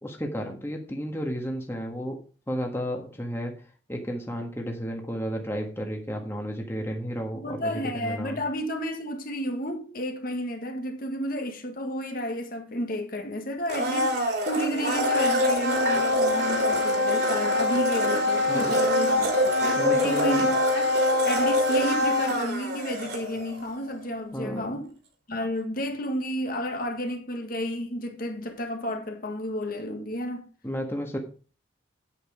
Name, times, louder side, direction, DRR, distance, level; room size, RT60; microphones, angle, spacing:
voice 1, 0.0-2.2 2.5-3.5 3.9-8.4 18.5-18.8 19.8-20.6 24.3-24.8 30.6-31.2, equal, 10° left, 1.6 m, -32 dB
voice 2, 7.3-19.3 19.6-20.9 21.2-24.9 25.3-30.5, equal, 45° left, 1.7 m, -31 dB
Domestic sounds home sounds, 13.7-23.6 23.9-24.0, left 1 dB, 55° right, 3.3 m, -24 dB
8.8 x 8.7 x 5.0 m
head